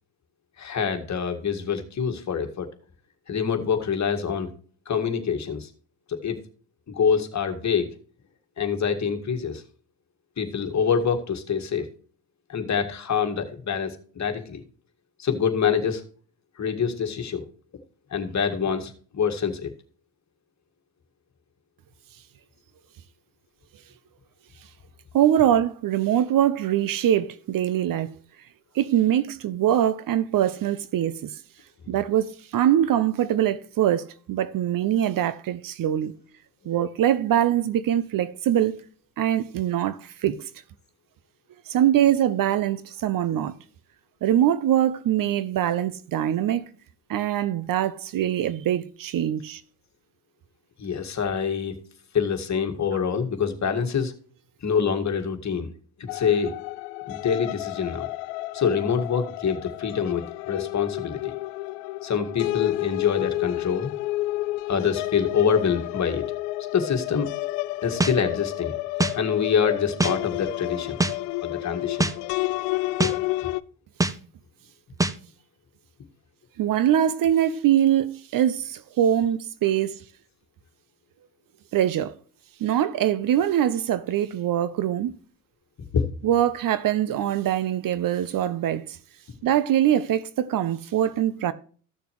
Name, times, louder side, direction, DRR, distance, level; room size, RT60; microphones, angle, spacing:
voice 1, 0.6-2.7 3.3-4.5 4.9-5.7 6.1-6.4 6.9-7.9 8.6-9.6 10.4-11.9 12.5-14.6 15.2-16.0 16.6-17.4 18.1-19.7 50.8-51.7 52.1-54.1 54.6-55.7 56.0-56.5 57.1-58.1 58.5-61.3 62.0-63.9 64.7-66.2 66.7-67.3 67.8-68.8 69.1-71.0 71.4-72.3 85.9-86.1, left 6 dB, 40° left, 1.9 m, -25 dB
voice 2, 25.1-28.1 28.7-31.3 31.9-36.1 36.7-38.8 39.2-40.4 41.7-43.6 44.2-46.7 47.1-49.6 76.6-80.0 81.7-82.1 82.6-85.2 86.2-89.0 89.4-91.5, right 11 dB, 50° right, 0.8 m, -23 dB
sound 1, 56.1-73.6, left 18 dB, 85° left, 0.5 m, -30 dB
sound 2, 68.0-68.1 69.0-69.1 70.0-70.1 71.0-71.1 72.0-72.1 73.0-73.1 74.0-74.1 75.0-75.1, right 2 dB, 10° right, 0.7 m, -22 dB
14.5 x 6.8 x 3.1 m
supercardioid pair, 70°, 42 cm